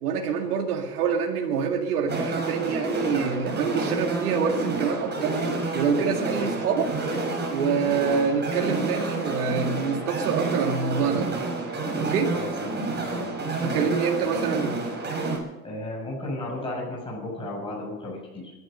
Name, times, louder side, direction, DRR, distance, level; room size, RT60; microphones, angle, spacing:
voice 1, 0.0-5.4 5.7-6.9 7.5-11.4 12.0-12.3 13.6-14.8, right 6 dB, 85° right, 2 dB, 2.1 m, -26 dB
sound 1, 2.1-15.4, right 2 dB, 20° right, 6.3 m, -29 dB
voice 2, 12.3-13.4 15.6-18.5, left 1 dB, 10° left, -4 dB, 7.5 m, -34 dB
22.0 x 12.0 x 5.5 m, 1.1 s
hypercardioid pair, 95°, 45 cm